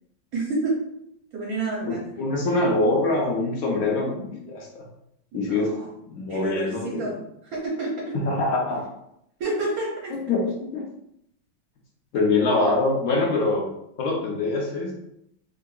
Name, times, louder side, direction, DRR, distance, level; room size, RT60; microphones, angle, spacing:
voice 1, 0.3-0.8 1.3-2.1 5.3-5.9 6.3-7.2 7.4-8.2 9.4-10.2, right 2 dB, 65° right, -3 dB, 1.0 m, -29 dB
voice 2, 1.9-4.9 5.3-5.8 6.1-7.1 8.1-8.9 10.1-10.8 12.1-13.7 14.0-14.9, left 2 dB, 65° left, -1 dB, 0.9 m, -24 dB
3.7 x 2.7 x 2.3 m, 0.77 s
omnidirectional pair, 2.0 m